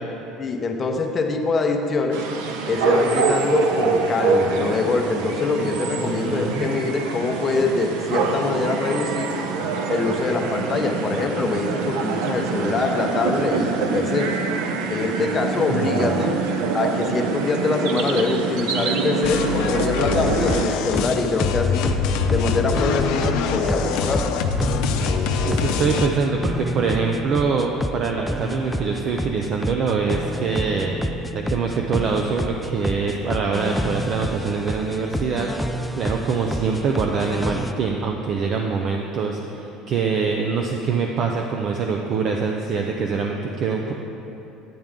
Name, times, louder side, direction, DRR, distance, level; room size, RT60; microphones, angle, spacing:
voice 1, 0.4-2.2 2.7-9.4 9.9-14.3 14.9-16.4 16.7-22.0 22.3-24.2, left 3 dB, 25° left, 3 dB, 0.8 m, -24 dB
sound 1, 2.1-20.7, right 4 dB, 90° right, 0.6 m, -25 dB
voice 2, 6.0-6.7 15.7-16.3 25.4-31.0 31.3-43.9, right 5 dB, 45° right, 2 dB, 0.5 m, -24 dB
sound 2, 19.2-26.1, left 5 dB, 75° left, 0.6 m, -24 dB
sound 3, 20.2-37.7, equal, 5° left, 0.3 m, -29 dB
10.0 x 7.6 x 3.6 m, 3.0 s
cardioid pair, 135°, 0 cm